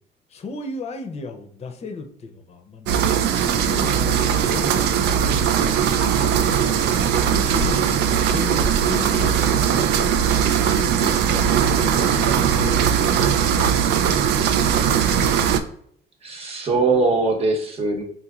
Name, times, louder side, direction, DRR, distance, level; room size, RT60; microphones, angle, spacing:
voice 1, 0.3-3.1 3.4-6.0 6.8-10.3 10.9-13.9, left 3 dB, 40° left, 6 dB, 0.6 m, -36 dB
sound 1, 2.9-15.6, right 8 dB, 80° right, 0.4 m, -19 dB
voice 2, 16.2-18.0, right 3 dB, 35° right, 2 dB, 0.9 m, -21 dB
3.7 x 2.9 x 2.4 m, 0.63 s
cardioid pair, 110°, 17 cm